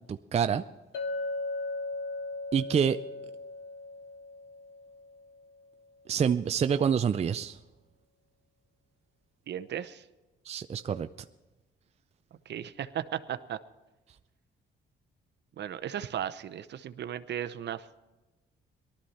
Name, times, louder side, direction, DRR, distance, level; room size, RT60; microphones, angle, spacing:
voice 1, 0.1-0.6 2.5-3.0 6.1-7.6 10.5-11.1, right 7 dB, 35° right, 10 dB, 0.4 m, -27 dB
Chink clink, 0.9-5.4, left 2 dB, 80° left, 1.3 m, -37 dB
voice 2, 9.5-10.0 12.5-13.6 15.6-18.0, right 10 dB, 60° right, 13 dB, 0.8 m, -36 dB
18.5 x 13.0 x 4.3 m, 1.1 s
cardioid pair, 90°, 20 cm